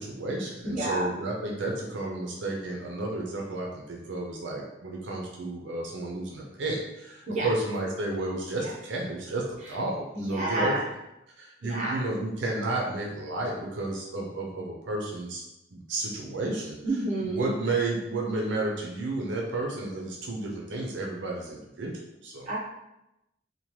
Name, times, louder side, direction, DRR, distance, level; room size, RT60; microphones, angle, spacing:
voice 1, 0.0-10.8 11.4-15.4 15.7-16.8 17.2-21.9 22.2-22.5, right 2 dB, 80° right, -1 dB, 0.5 m, -32 dB
voice 2, 0.6-1.1 7.3-7.5 10.1-10.8 11.6-12.0 16.8-17.5 22.5-22.6, right 1 dB, 40° right, -5 dB, 0.7 m, -29 dB
2.9 x 2.2 x 3.0 m, 0.89 s
head